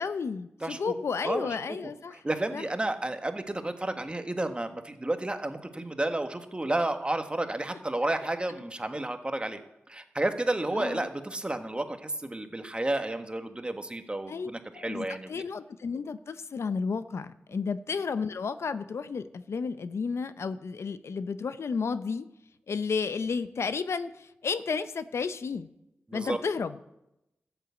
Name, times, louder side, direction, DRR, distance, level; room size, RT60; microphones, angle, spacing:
voice 1, 0.0-2.2 2.5-2.7 10.7-11.1 14.3-22.3 22.7-25.7 26.1-26.8, left 5 dB, 75° left, 13 dB, 0.6 m, -32 dB
voice 2, 0.6-0.9 1.2-1.5 2.1-9.6 9.9-15.3 17.5-17.6 26.1-26.4, right 2 dB, 20° right, 7 dB, 1.5 m, -31 dB
14.0 x 8.1 x 8.3 m, 0.89 s
cardioid pair, 60°, 5 cm